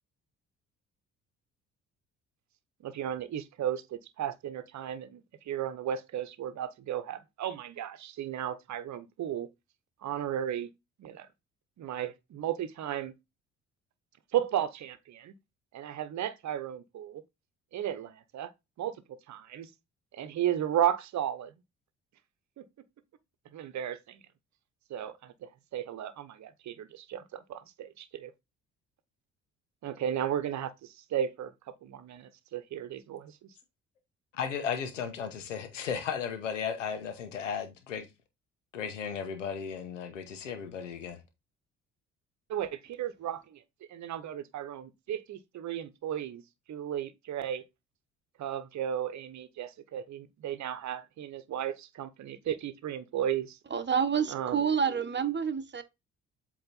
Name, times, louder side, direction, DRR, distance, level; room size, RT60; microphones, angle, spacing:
voice 1, 2.8-9.5 10.0-10.7 11.0-11.3 11.8-13.1 14.3-15.3 15.7-17.2 17.7-18.5 18.8-19.7 20.1-21.5 22.6-22.7 23.5-24.2 24.9-28.3 29.8-31.5 31.8-33.5 42.5-43.6 43.9-46.4 46.7-47.6 48.4-53.6 54.3-54.6, right 10 dB, 50° right, 1.0 m, -34 dB
voice 2, 34.3-38.1 38.7-41.2, left 7 dB, 90° left, 1.0 m, -35 dB
voice 3, 53.7-55.8, right 7 dB, 30° right, 1.1 m, -28 dB
7.8 x 3.1 x 4.0 m
hypercardioid pair, 50°, 36 cm